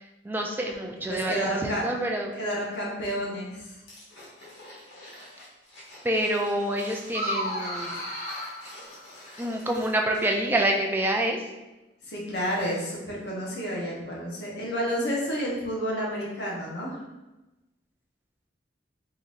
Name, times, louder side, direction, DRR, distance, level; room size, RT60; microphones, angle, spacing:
voice 1, 0.0-2.3 6.0-7.9 9.4-11.4, right 1 dB, 10° right, 1 dB, 0.3 m, -27 dB
voice 2, 1.1-1.8 2.3-3.8 12.0-17.0, equal, 65° left, -4 dB, 1.0 m, -30 dB
sound 1, 3.9-10.5 10.8-10.9, left 1 dB, 85° left, 1.3 m, -48 dB
sound 2, 7.1-9.6, equal, 45° left, 1.0 m, -33 dB
3.8 x 3.0 x 2.5 m, 1.0 s
head